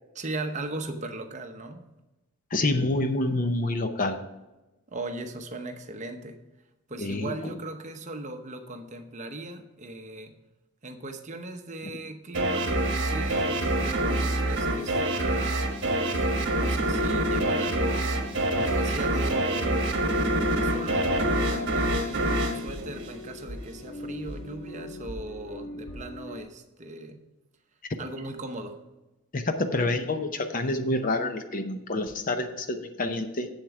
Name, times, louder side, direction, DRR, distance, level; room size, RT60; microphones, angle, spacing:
voice 1, 0.1-1.9 4.9-6.4 6.9-10.4 10.8-18.1 18.6-20.0 20.5-21.2 21.5-27.3 28.0-28.8, right 2 dB, 35° right, 6 dB, 0.8 m, -38 dB
voice 2, 2.5-4.2 7.0-7.3 17.1-17.2 18.5-18.6 29.3-33.5, left 2 dB, 40° left, 7 dB, 0.7 m, -27 dB
sound 1, 12.3-23.6, right 1 dB, 55° right, 1.3 m, -26 dB
sound 2, 21.0-26.4, equal, 70° left, 1.8 m, -41 dB
8.1 x 7.4 x 4.8 m, 1.0 s
head